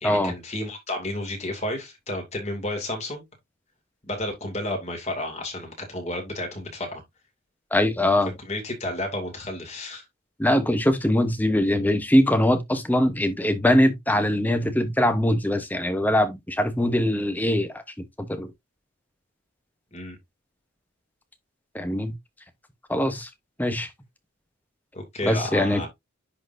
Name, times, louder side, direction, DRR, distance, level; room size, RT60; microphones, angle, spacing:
voice 1, 0.0-3.2 4.1-7.0 8.5-10.0 19.9-20.2 24.9-25.9, left 1 dB, 30° left, 2.5 m, -31 dB
voice 2, 7.7-8.3 10.4-18.5 21.7-22.1 22.9-23.3 23.6-23.9 25.2-25.9, left 1 dB, 10° left, 0.9 m, -22 dB
10.5 x 4.0 x 2.6 m
head